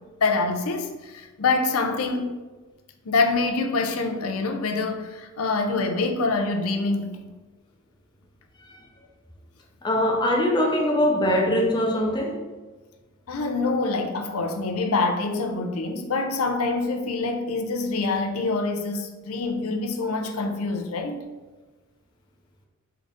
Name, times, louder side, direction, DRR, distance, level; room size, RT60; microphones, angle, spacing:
voice 1, 0.2-2.3 3.1-7.3 13.3-21.2, left 3 dB, 80° left, 0.5 m, -25 dB
voice 2, 9.8-12.4, left 1 dB, 20° left, 0.6 m, -22 dB
3.9 x 3.8 x 3.5 m
head